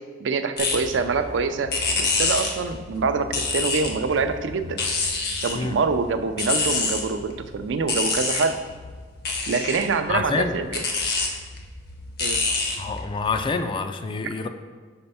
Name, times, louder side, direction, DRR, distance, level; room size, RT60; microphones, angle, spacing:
voice 1, 0.2-4.8 5.4-8.6 9.5-10.8 12.2-12.4, right 4 dB, 85° right, 8 dB, 0.4 m, -25 dB
sound 1, 0.6-13.4, left 3 dB, 60° left, 0.9 m, -28 dB
voice 2, 10.1-10.5 12.8-14.5, left 4 dB, 25° left, 8 dB, 0.3 m, -26 dB
4.3 x 4.3 x 5.5 m, 1.5 s
head